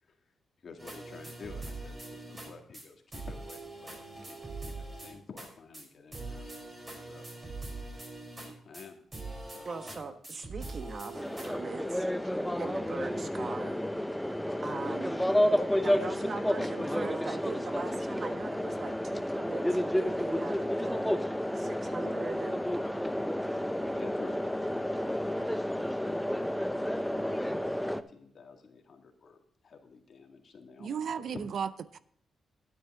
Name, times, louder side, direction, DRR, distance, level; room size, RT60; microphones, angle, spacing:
voice 1, 0.0-4.0 4.2-6.5 6.9-7.3 7.6-7.8 8.6-9.0 9.5-10.0 15.9-17.0 23.6-31.4, left 5 dB, 60° left, 2.1 m, -51 dB
sound 1, 0.8-2.5 2.7-2.8 3.1-5.5 5.7-5.8 6.1-8.8 9.1-10.0 10.2-11.5, right 2 dB, 25° right, 4.8 m, -42 dB
voice 2, 9.6-13.8 14.6-15.3 15.6-21.1 21.5-22.6, right 4 dB, 50° right, 1.3 m, -41 dB
sound 2, 11.1-28.0, equal, 5° left, 0.6 m, -31 dB
voice 3, 30.8-32.0, right 7 dB, 70° right, 0.5 m, -35 dB
11.0 x 9.5 x 3.7 m
cardioid pair, 80°, 0 cm